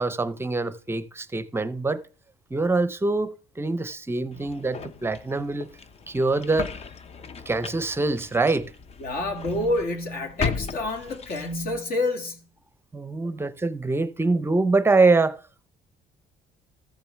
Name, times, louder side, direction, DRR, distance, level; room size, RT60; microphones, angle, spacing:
voice 1, 0.0-2.0 2.5-5.7 6.1-6.7 7.5-8.7 12.9-15.4, right 3 dB, 15° right, 0.6 m, -24 dB
sound 1, 4.3-11.8, left 5 dB, 35° left, 0.7 m, -36 dB
voice 2, 9.0-12.4, left 2 dB, 60° left, 2.1 m, -28 dB
14.0 x 6.9 x 3.4 m
cardioid pair, 110°, 17 cm